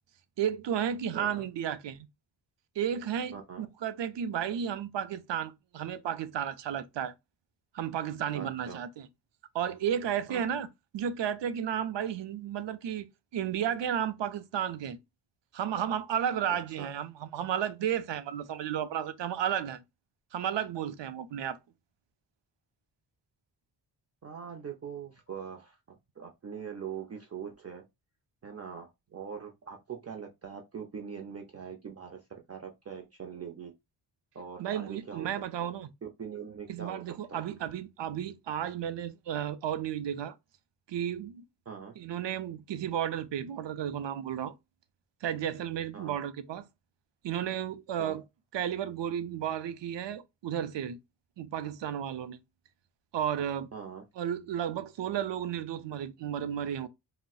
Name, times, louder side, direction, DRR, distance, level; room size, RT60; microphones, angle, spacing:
voice 1, 0.4-2.1 2.8-7.1 7.7-9.1 9.5-10.7 10.9-13.1 13.3-15.0 15.5-19.8 20.3-21.6 34.6-35.9 36.7-40.4 40.9-41.4 42.0-44.5 45.2-46.7 47.2-48.2 48.5-51.0 51.4-52.4 53.1-53.7 54.2-56.9, right 9 dB, 85° right, 0.6 m, -33 dB
voice 2, 1.1-1.5 3.3-3.7 8.3-8.8 10.3-10.5 16.8-16.9 24.2-25.8 26.2-27.8 28.4-33.7 34.3-35.3 35.6-35.7 36.0-37.5 41.7-41.9 45.9-46.1 48.0-48.2 53.7-54.0, right 7 dB, 35° right, 0.5 m, -42 dB
3.9 x 2.0 x 2.3 m
wide cardioid pair, 125°, 43 cm